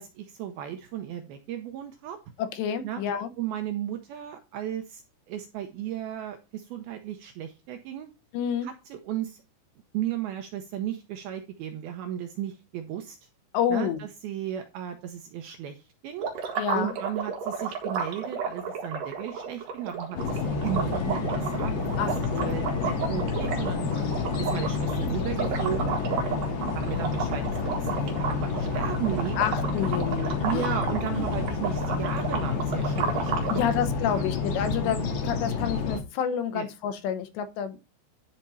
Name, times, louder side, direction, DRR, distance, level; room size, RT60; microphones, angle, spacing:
voice 1, 0.0-2.2 2.8-3.0 3.4-5.0 5.3-8.1 8.6-9.4 9.9-13.2 13.7-16.3 16.7-21.7 22.0-22.1 22.4-23.9 24.4-26.4 26.7-29.4 30.4-33.8 34.1-34.2 36.5-36.7, right 10 dB, 75° right, 6 dB, 2.3 m, -35 dB
voice 2, 2.4-3.3 8.3-8.7 13.5-14.0 16.6-16.9 22.0-22.7 29.4-31.3 33.5-37.8, left 8 dB, 75° left, 9 dB, 3.2 m, -29 dB
sound 1, 16.2-33.6, right 6 dB, 60° right, 2.9 m, -33 dB
sound 2, 20.2-36.0, left 4 dB, 55° left, 3.4 m, -29 dB
sound 3, 20.7-27.3, left 2 dB, 40° left, 0.9 m, -45 dB
11.0 x 4.4 x 5.4 m, 0.28 s
omnidirectional pair, 5.2 m